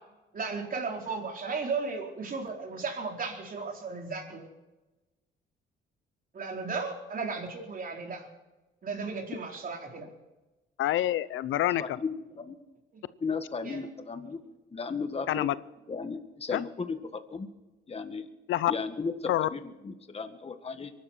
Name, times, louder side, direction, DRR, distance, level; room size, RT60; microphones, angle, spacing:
voice 1, 0.3-4.4 6.3-8.3 8.8-10.1 12.9-13.0 13.6-13.8, right 4 dB, 45° right, 1 dB, 4.4 m, -35 dB
voice 2, 10.8-12.0 15.3-15.5 16.5-16.6 18.5-18.7 19.3-19.5, left 13 dB, 80° left, 17 dB, 0.7 m, -27 dB
voice 3, 11.8-12.6 13.2-14.4 14.7-15.5 15.9-17.0 17.3-17.5 17.9-18.3 18.7-20.9, left 4 dB, 30° left, 8 dB, 1.8 m, -35 dB
23.0 x 12.0 x 4.5 m, 1.1 s
cardioid pair, 90°, 20 cm